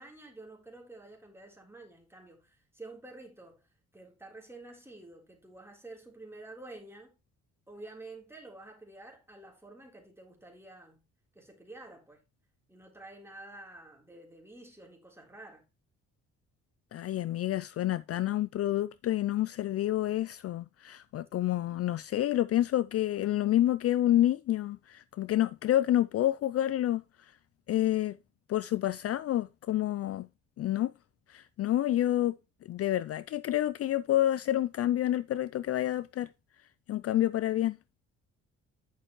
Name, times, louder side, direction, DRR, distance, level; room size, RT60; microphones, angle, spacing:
voice 1, 0.0-7.2 7.7-11.1 11.4-12.2 12.7-15.7, right 2 dB, 10° right, 3.5 m, -49 dB
voice 2, 16.9-27.0 27.7-28.2 28.5-30.3 30.6-30.9 31.3-32.3 32.7-36.3 36.9-37.8, left 13 dB, 50° left, 0.4 m, -28 dB
10.0 x 6.5 x 3.1 m
cardioid pair, 90°, 30 cm